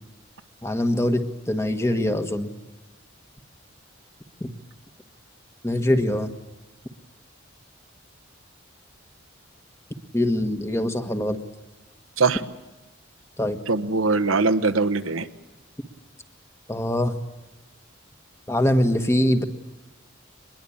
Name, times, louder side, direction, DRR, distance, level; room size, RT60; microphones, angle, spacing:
voice 1, 0.6-2.5 4.4-4.5 5.6-6.3 10.1-11.4 13.4-13.6 16.7-17.1 18.5-19.4, left 1 dB, 15° left, 7 dB, 1.5 m, -23 dB
voice 2, 13.7-15.3, right 3 dB, 85° right, 10 dB, 1.3 m, -21 dB
24.5 x 21.0 x 8.7 m, 1.1 s
head